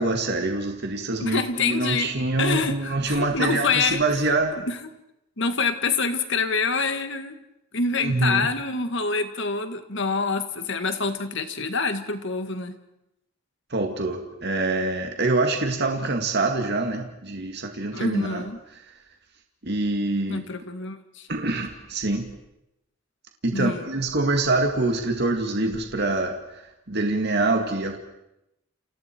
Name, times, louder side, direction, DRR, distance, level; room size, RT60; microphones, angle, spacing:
voice 1, 0.0-4.6 7.9-8.5 13.7-18.4 19.6-20.4 21.3-22.3 23.4-26.6 26.9-28.0, right 2 dB, 50° right, 3 dB, 2.1 m, -25 dB
voice 2, 1.2-2.1 2.4-4.9 5.4-7.4 7.7-12.8 17.9-18.6 20.3-21.3 23.5-23.9, left 4 dB, 60° left, 8 dB, 2.0 m, -26 dB
30.0 x 29.0 x 4.6 m, 0.88 s
head